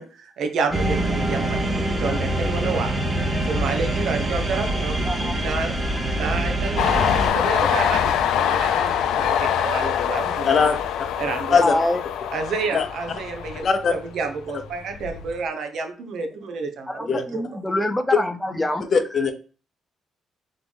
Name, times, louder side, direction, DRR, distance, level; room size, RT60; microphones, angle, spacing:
voice 1, 0.0-2.9 3.5-5.8 6.1-10.7 11.2-11.6 12.3-13.7 14.1-17.4, right 4 dB, 70° right, 6 dB, 0.9 m, -29 dB
sound 1, 0.7-7.3, right 1 dB, 25° right, 1.1 m, -24 dB
voice 2, 5.1-5.4 7.7-7.8 11.6-12.0 16.9-18.8, left 1 dB, 10° left, 8 dB, 0.5 m, -25 dB
Train, 6.8-14.2 14.6-15.4, left 9 dB, 85° left, 0.4 m, -24 dB
voice 3, 10.4-10.8 11.5-11.7 12.7-12.9 13.6-13.9 14.5-14.6 17.1-17.2 18.9-19.3, left 5 dB, 50° left, 7 dB, 0.7 m, -20 dB
3.9 x 3.3 x 3.5 m, 0.38 s
cardioid pair, 90°, 0 cm